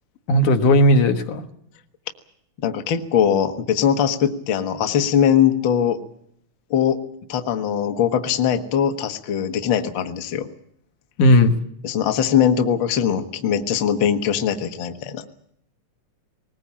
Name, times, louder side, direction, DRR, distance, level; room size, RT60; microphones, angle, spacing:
voice 1, 0.3-1.4 11.2-11.6, left 1 dB, 75° left, 6 dB, 2.9 m, -15 dB
voice 2, 2.6-6.0 6.7-7.0 7.3-10.5 11.8-15.2, left 8 dB, 50° left, 7 dB, 1.6 m, -21 dB
20.5 x 20.0 x 8.6 m, 0.72 s
omnidirectional pair, 3.6 m